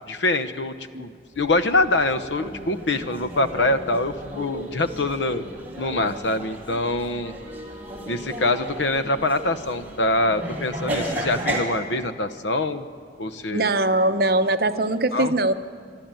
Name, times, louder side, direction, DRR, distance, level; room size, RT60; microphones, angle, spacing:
voice 1, 0.1-1.1 1.4-5.4 5.8-7.3 8.1-12.9 13.2-13.7 15.1-15.3, left 2 dB, 85° left, 10 dB, 1.0 m, -24 dB
sound 1, 1.3-11.6, right 1 dB, 10° right, 2.8 m, -34 dB
voice 2, 13.5-15.5, right 2 dB, 55° right, 9 dB, 0.8 m, -21 dB
26.5 x 12.0 x 9.1 m, 2.1 s
head